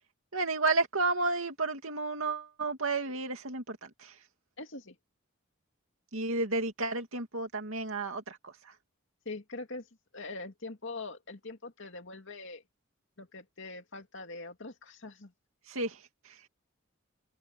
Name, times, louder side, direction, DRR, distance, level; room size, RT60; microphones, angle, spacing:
voice 1, 0.3-4.2 6.1-8.7 15.7-16.5, right 3 dB, 75° right, 2.5 m, -32 dB
voice 2, 4.6-5.0 9.3-9.9 10.1-12.6 13.2-15.3, left 3 dB, 60° left, 2.5 m, -43 dB
head